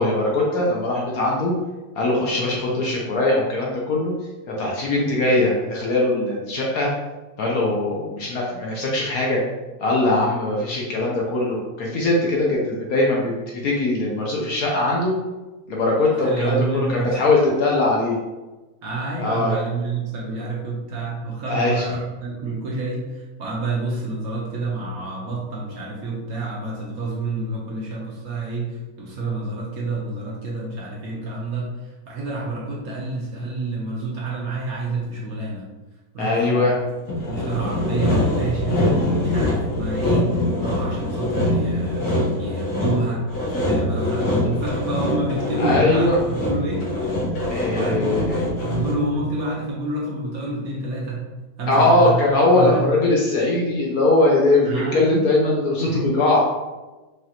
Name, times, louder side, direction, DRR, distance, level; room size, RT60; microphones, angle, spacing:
voice 1, 0.0-1.5 2.0-4.1 4.5-6.9 7.4-9.4 9.8-13.3 13.6-15.1 15.7-18.2 19.2-19.6 21.5-21.8 36.2-36.7 45.6-46.2 47.5-48.4 51.7-56.4, left 2 dB, 65° left, -3 dB, 1.0 m, -20 dB
voice 2, 16.1-17.3 18.8-31.7 32.1-35.6 36.1-36.6 37.2-38.8 39.1-43.2 43.5-46.9 47.8-51.2 51.6-52.2 52.5-52.9 54.7-55.3 55.8-56.0, right 2 dB, 60° right, -4 dB, 1.2 m, -28 dB
Sawing, 37.1-49.1, left 1 dB, 90° left, 1.9 m, -24 dB
4.9 x 2.5 x 2.9 m, 1.1 s
omnidirectional pair, 1.9 m